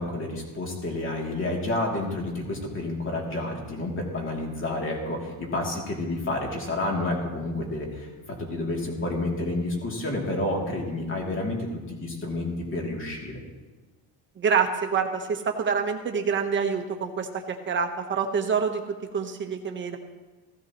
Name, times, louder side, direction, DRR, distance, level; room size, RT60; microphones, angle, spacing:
voice 1, 0.0-8.1 8.4-11.6 11.9-13.4, left 2 dB, 30° left, -1 dB, 2.7 m, -30 dB
voice 2, 14.4-17.3 17.7-18.8 19.1-20.0, right 6 dB, 30° right, 5 dB, 1.0 m, -26 dB
16.0 x 15.5 x 3.0 m, 1.3 s
cardioid pair, 170°, 41 cm